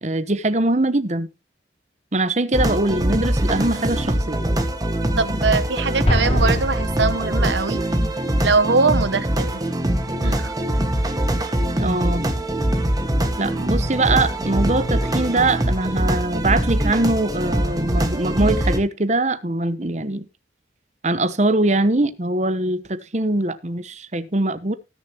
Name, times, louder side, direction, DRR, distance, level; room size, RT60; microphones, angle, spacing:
voice 1, 0.0-1.3 2.1-4.4 11.8-12.3 13.4-20.2 21.0-24.7, right 2 dB, 40° right, 13 dB, 1.0 m, -22 dB
sound 1, 2.5-18.8, right 1 dB, 20° right, 1.6 m, -23 dB
voice 2, 5.2-7.8 8.4-9.6 10.2-10.5, right 4 dB, 75° right, 15 dB, 1.1 m, -22 dB
Explosion, 6.1-7.8, equal, 30° left, 3.2 m, -23 dB
19.5 x 7.0 x 2.9 m, 0.26 s
head